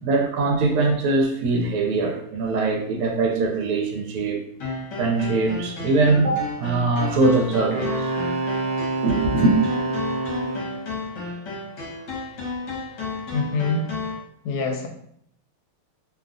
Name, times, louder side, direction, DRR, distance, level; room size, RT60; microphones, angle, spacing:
voice 1, 0.0-4.4 4.9-8.5 9.0-9.5, right 3 dB, 90° right, 1.5 m, -22 dB
sound 1, 4.6-14.2, left 3 dB, 60° left, 1.3 m, -33 dB
Wind instrument woodwind instrument, 7.7-10.9, right 3 dB, 70° right, 1.1 m, -27 dB
voice 2, 13.3-13.9 14.4-14.9, left 3 dB, 75° left, 1.3 m, -25 dB
3.5 x 2.3 x 2.4 m
omnidirectional pair, 2.4 m